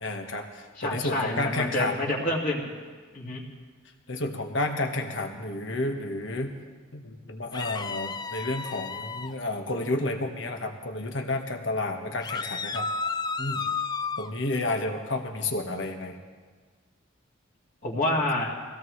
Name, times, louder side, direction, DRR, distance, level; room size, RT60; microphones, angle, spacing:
voice 1, 0.0-2.1 4.1-6.5 6.9-12.9 13.4-13.6 14.2-16.2, left 2 dB, 65° left, 4 dB, 1.4 m, -31 dB
voice 2, 0.8-2.7 3.1-3.4 17.8-18.5, left 1 dB, 45° left, -3 dB, 2.3 m, -28 dB
sound 1, 7.5-9.3 12.2-14.3, left 4 dB, 20° left, 0.3 m, -32 dB
22.5 x 16.5 x 3.2 m, 1.5 s
head